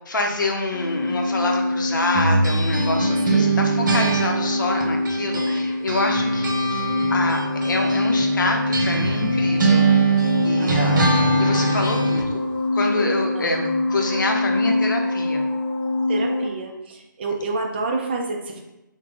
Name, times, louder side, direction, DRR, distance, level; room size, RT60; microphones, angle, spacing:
voice 1, 0.1-6.5 7.1-10.1 10.4-11.0 11.4-12.4 12.7-13.6 13.9-15.4, left 2 dB, 65° left, 2 dB, 0.7 m, -26 dB
sound 1, 0.7-16.5, left 2 dB, 30° left, 0.7 m, -24 dB
sound 2, 2.1-5.6 5.9-12.3, right 3 dB, 65° right, 0.7 m, -23 dB
voice 2, 10.6-11.1 13.3-13.7 16.1-18.6, right 3 dB, 30° right, 2 dB, 0.4 m, -29 dB
4.5 x 2.2 x 2.5 m, 0.94 s
hypercardioid pair, 160°, 11 cm